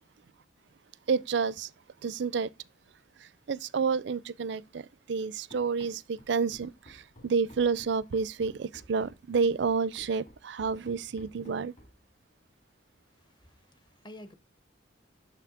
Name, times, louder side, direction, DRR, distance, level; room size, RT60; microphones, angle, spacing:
voice 1, 1.1-1.7 2.0-2.5 3.2-11.7, right 5 dB, 65° right, 0.4 m, -30 dB
Run, 5.5-12.1, equal, 40° left, 2.0 m, -54 dB
voice 2, 13.2-14.3, left 1 dB, 25° left, 0.7 m, -50 dB
7.0 x 5.9 x 3.6 m
head